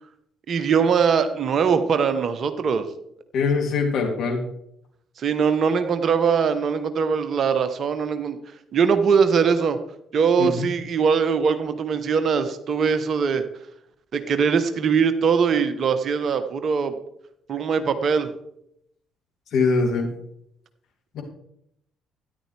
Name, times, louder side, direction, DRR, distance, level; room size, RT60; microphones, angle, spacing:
voice 1, 0.5-2.9 5.2-8.4 8.7-9.8 10.1-13.4 14.1-17.0 17.5-18.3, right 6 dB, 50° right, 10 dB, 1.1 m, -21 dB
voice 2, 3.3-4.5 10.4-10.7 19.5-20.1 21.1-21.2, left 4 dB, 55° left, 1 dB, 3.0 m, -22 dB
13.0 x 10.5 x 3.4 m, 0.74 s
figure-of-eight pair, 50°, 0 cm